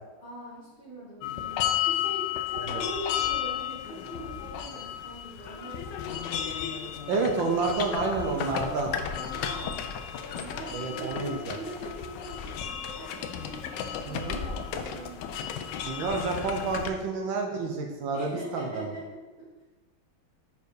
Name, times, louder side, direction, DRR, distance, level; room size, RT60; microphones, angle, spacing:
voice 1, 0.2-6.3 8.4-9.9 10.2-15.6 18.1-19.6, right 1 dB, 30° left, -9 dB, 1.3 m, -42 dB
sound 1, 1.2-16.9, left 9 dB, 75° left, 1.0 m, -33 dB
voice 2, 7.1-8.9 10.7-11.6 14.1-14.4 15.8-18.9, right 4 dB, 70° right, 2 dB, 1.4 m, -29 dB
5.3 x 4.6 x 4.7 m, 1.2 s
omnidirectional pair, 2.3 m